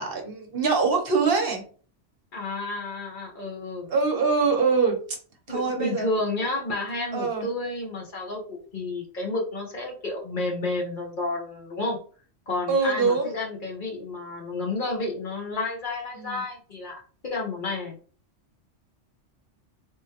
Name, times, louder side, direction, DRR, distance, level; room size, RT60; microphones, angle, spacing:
voice 1, 0.0-1.6 3.9-5.0 5.5-6.1 7.1-7.5 12.7-13.3 16.2-16.4, right 4 dB, 55° right, 3 dB, 1.1 m, -23 dB
voice 2, 2.3-3.9 5.5-12.0 12.5-18.0, left 2 dB, 45° left, 0 dB, 1.2 m, -31 dB
3.7 x 3.0 x 2.9 m, 0.41 s
omnidirectional pair, 1.3 m